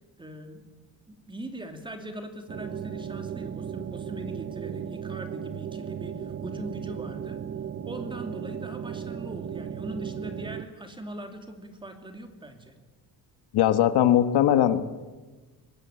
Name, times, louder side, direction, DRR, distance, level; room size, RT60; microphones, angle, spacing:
voice 1, 0.2-0.6 1.1-7.4 7.8-12.7, right 1 dB, 10° right, 6 dB, 2.6 m, -41 dB
sound 1, 2.5-10.6, right 8 dB, 35° right, 0.7 m, -36 dB
voice 2, 13.5-14.8, left 11 dB, 90° left, 11 dB, 1.5 m, -20 dB
24.0 x 20.0 x 9.0 m, 1.3 s
cardioid pair, 165°, 38 cm